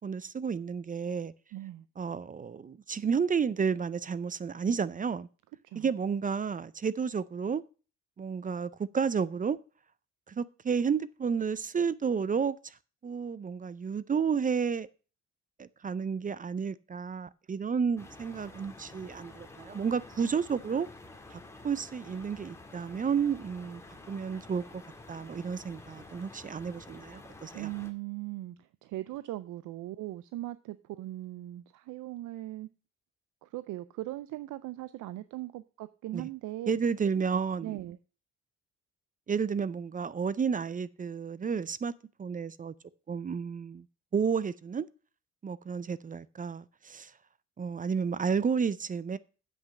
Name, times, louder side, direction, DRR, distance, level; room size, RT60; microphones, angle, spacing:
voice 1, 0.0-1.3 2.0-5.3 5.8-7.6 8.2-9.6 10.3-12.8 13.0-14.9 15.6-20.9 21.3-23.8 24.1-24.8 25.1-27.7 36.1-36.3 36.7-37.8 39.3-41.9 42.2-42.7 43.1-43.9 44.1-44.9 45.4-47.1 47.6-49.2, right 6 dB, 25° right, 0.5 m, -31 dB
voice 2, 1.5-1.8 5.6-5.9 27.5-32.7 33.4-36.7 37.6-38.0, right 16 dB, 80° right, 0.5 m, -39 dB
sound 1, 18.0-27.9, left 2 dB, 10° left, 1.8 m, -50 dB
8.0 x 5.9 x 7.3 m
cardioid pair, 90°, 30 cm